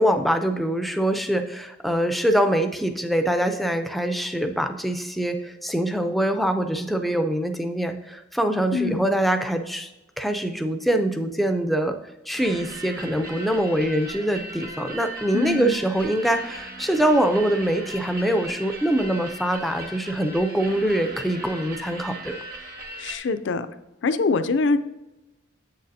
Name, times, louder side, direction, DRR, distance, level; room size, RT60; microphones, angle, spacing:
voice 1, 0.0-9.9 10.2-12.0 12.3-22.3, right 1 dB, ahead, 6 dB, 0.4 m, -24 dB
voice 2, 8.7-9.0 15.3-15.8 23.0-23.7 24.0-24.8, left 4 dB, 70° left, 12 dB, 0.5 m, -23 dB
sound 1, 12.3-23.2, right 1 dB, 50° right, 1.3 m, -38 dB
8.1 x 6.6 x 2.7 m, 1.0 s
head